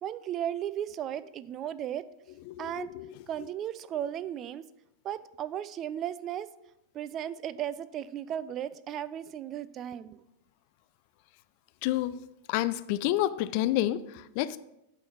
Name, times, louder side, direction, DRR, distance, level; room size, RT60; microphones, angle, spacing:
voice 1, 0.0-2.1 2.6-2.9 3.3-4.6 5.0-6.5 6.9-10.2, right 10 dB, 30° right, 0.3 m, -35 dB
voice 2, 2.5-3.5 11.8-12.2 12.5-14.6, left 14 dB, 45° left, 0.3 m, -30 dB
8.6 x 4.5 x 5.2 m
figure-of-eight pair, 90°, 0 cm